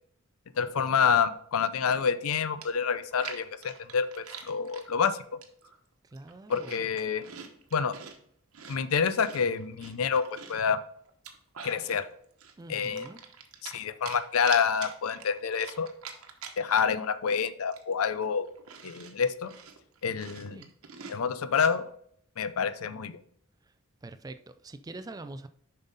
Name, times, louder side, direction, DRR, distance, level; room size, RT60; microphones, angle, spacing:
voice 1, 0.6-5.2 6.5-7.2 7.7-8.0 8.7-10.8 11.6-12.1 12.7-13.1 13.6-15.9 16.6-18.5 18.8-19.5 20.0-20.6 21.1-21.8 22.4-23.2, left 6 dB, 90° left, 14 dB, 0.5 m, -28 dB
Chewing mastication, 2.2-2.3 2.6-4.9 5.4-5.8 6.1-8.2 8.5-10.7 11.1-12.0 12.4-13.8 14.1-17.1 17.3-17.4 17.7-21.8, right 6 dB, 90° right, 1.0 m, -45 dB
voice 2, 6.1-6.8 12.6-13.2 20.5-20.7 24.0-25.5, right 2 dB, 15° right, 11 dB, 0.3 m, -44 dB
7.1 x 5.6 x 4.0 m, 0.67 s
head